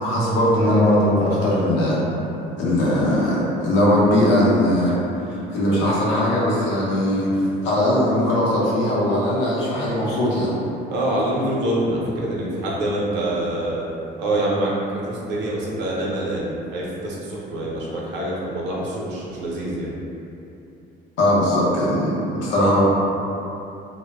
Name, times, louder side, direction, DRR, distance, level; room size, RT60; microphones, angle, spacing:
voice 1, 0.0-2.0 2.6-4.9 5.5-10.5 21.2-22.8, left 1 dB, 85° left, -6 dB, 0.6 m, -19 dB
voice 2, 10.9-13.9 14.2-14.7 15.0-19.9, right 1 dB, 75° right, -5 dB, 0.6 m, -25 dB
2.1 x 2.0 x 3.3 m, 2.8 s
cardioid pair, 175°, 18 cm